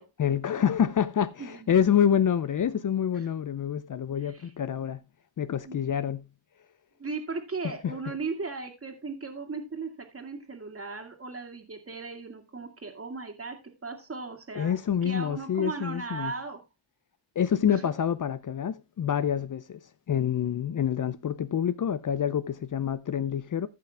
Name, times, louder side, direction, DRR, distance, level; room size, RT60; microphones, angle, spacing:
voice 1, 0.2-5.0 5.4-6.3 7.6-8.1 14.5-16.3 17.4-19.8 20.1-23.7, left 9 dB, 45° left, 0.6 m, -27 dB
voice 2, 1.4-1.9 3.1-3.3 4.2-4.5 5.7-5.8 7.0-16.6 17.7-17.9, right 4 dB, 30° right, 2.2 m, -37 dB
14.5 x 5.8 x 3.4 m
cardioid pair, 95°, 45 cm